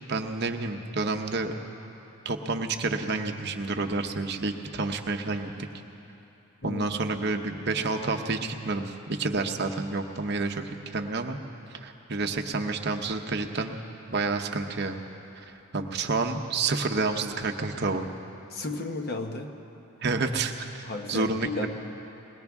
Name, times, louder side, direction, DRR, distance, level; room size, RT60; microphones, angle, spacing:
voice 1, 0.1-1.5 2.2-5.7 6.6-11.4 11.8-13.7 14.1-15.0 15.3-18.1 20.0-20.7 21.1-21.7, right 3 dB, 50° right, 4 dB, 0.8 m, -29 dB
voice 2, 18.5-19.5 20.8-21.7, left 2 dB, 45° left, 4 dB, 1.0 m, -33 dB
21.5 x 19.0 x 3.6 m, 3.0 s
head